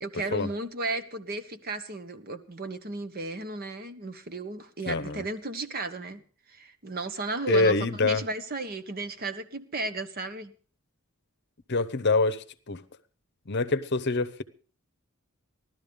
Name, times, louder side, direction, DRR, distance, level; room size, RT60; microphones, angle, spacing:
voice 1, 0.0-6.2 6.5-10.5, right 2 dB, 45° right, 1.2 m, -34 dB
voice 2, 4.9-5.2 7.5-8.2 11.7-12.8 13.5-14.4, left 3 dB, 50° left, 0.9 m, -25 dB
16.0 x 12.5 x 5.2 m
head